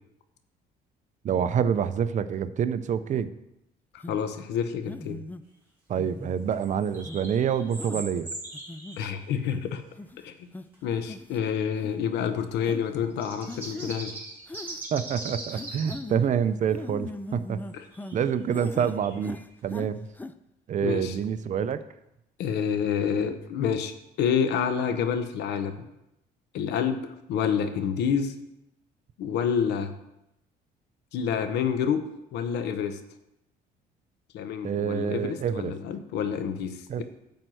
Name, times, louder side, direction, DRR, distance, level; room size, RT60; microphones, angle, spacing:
voice 1, 1.2-3.3 5.9-8.3 14.9-17.6 18.1-20.1 20.7-21.8 34.6-35.7 36.9-37.0, right 8 dB, 45° right, 12 dB, 0.6 m, -27 dB
voice 2, 3.9-5.2 9.0-9.8 10.2-10.5 10.8-14.2 17.7-17.8 20.8-21.2 22.4-25.7 26.5-28.3 29.2-29.9 31.1-32.1 32.3-33.0 34.3-37.0, left 7 dB, 85° left, 8 dB, 1.0 m, -28 dB
sound 1, 4.0-4.2 4.9-5.4 5.9-6.4 7.0-7.2 7.8-8.0 8.5-9.0 9.5-9.6 10.0-10.2 10.5-10.6 11.0-11.4 11.8-11.9 12.6-12.8 13.5-14.0 14.5-14.9 15.5-16.2 16.7-18.2 18.5-19.0 19.2-19.9 20.2-20.3, left 2 dB, 10° left, 0.4 m, -40 dB
sound 2, 6.5-9.6 10.7-10.8 12.8-16.0 17.7-19.6, right 2 dB, 10° right, 3.8 m, -41 dB
10.5 x 4.6 x 7.8 m, 0.86 s
cardioid pair, 110°, 17 cm